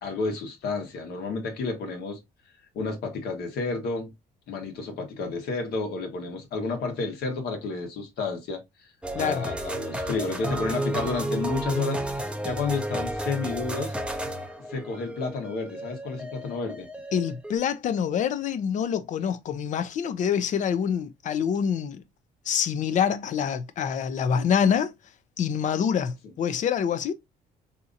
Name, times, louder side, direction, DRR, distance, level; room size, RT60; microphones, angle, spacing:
voice 1, 0.0-2.2 2.7-4.1 4.5-8.6 9.2-12.0 12.4-13.9 14.7-16.9, left 4 dB, 70° left, 1.1 m, -31 dB
sound 1, 9.0-17.6, right 1 dB, 5° right, 0.5 m, -32 dB
voice 2, 17.1-22.0 22.5-24.9 25.4-27.1, left 7 dB, 50° left, 0.5 m, -26 dB
3.8 x 2.8 x 2.5 m
cardioid pair, 110°, 17 cm